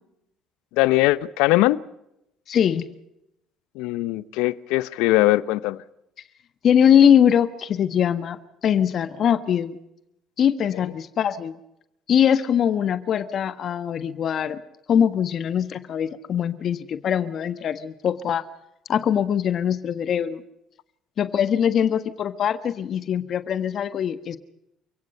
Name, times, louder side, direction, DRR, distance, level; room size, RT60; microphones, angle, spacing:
voice 1, 0.7-1.8 3.8-5.8, left 18 dB, 75° left, 0.8 m, -21 dB
voice 2, 2.5-2.9 6.6-9.8 10.4-11.5 12.1-14.6 14.9-18.4 18.9-20.4 21.2-24.4, left 8 dB, 55° left, 1.4 m, -22 dB
29.5 x 17.0 x 5.5 m
hypercardioid pair, 65°, 0 cm